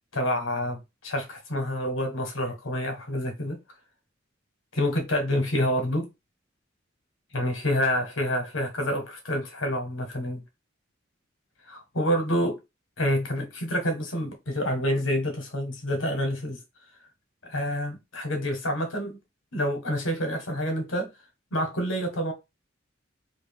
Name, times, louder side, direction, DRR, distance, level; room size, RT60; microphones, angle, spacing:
voice 1, 0.1-3.6 4.7-6.1 7.3-10.4 11.7-12.6 13.0-16.6 17.5-19.2 19.5-21.1 21.5-22.3, equal, 85° left, 1.3 m, -28 dB
3.1 x 2.6 x 3.5 m
head